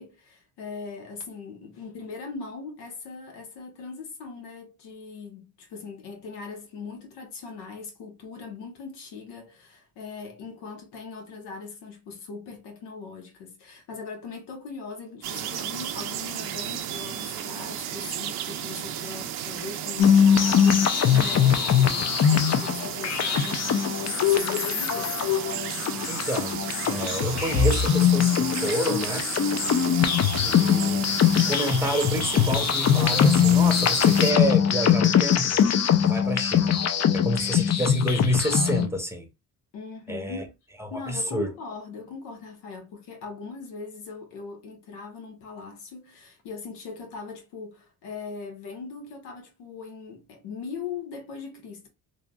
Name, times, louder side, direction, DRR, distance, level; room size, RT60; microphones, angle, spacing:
voice 1, 0.0-25.2 39.7-40.6 40.9-51.9, left 5 dB, 80° left, 1.1 m, -40 dB
sound 1, 15.2-34.3, right 10 dB, 70° right, 0.6 m, -34 dB
sound 2, 20.0-38.9, left 8 dB, 40° left, 0.5 m, -22 dB
voice 2, 26.1-29.3 30.4-31.1 31.3-35.6 36.0-36.8 37.1-39.3 40.1-40.4 40.8-41.5, equal, 5° right, 0.8 m, -28 dB
3.2 x 2.6 x 2.2 m
supercardioid pair, 70°, 39 cm